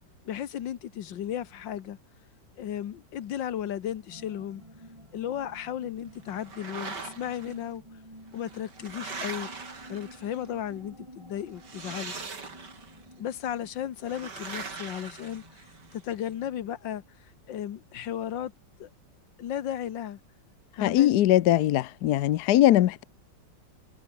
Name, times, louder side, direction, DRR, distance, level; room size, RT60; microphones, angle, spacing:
voice 1, 0.2-2.0 2.6-4.6 5.1-7.8 8.3-9.5 9.9-12.1 13.2-15.7 15.9-17.0 17.5-18.5 18.8-18.9 19.4-20.2 20.8-21.2, left 10 dB, 85° left, 1.8 m, -34 dB
sound 1, 4.1-16.6, right 1 dB, 15° right, 7.1 m, -51 dB
sound 2, 6.3-7.5 8.3-10.5 11.6-13.0 14.1-16.0, right 4 dB, 65° right, 3.8 m, -41 dB
voice 2, 20.8-23.0, left 13 dB, 70° left, 1.2 m, -21 dB
omnidirectional pair, 2.0 m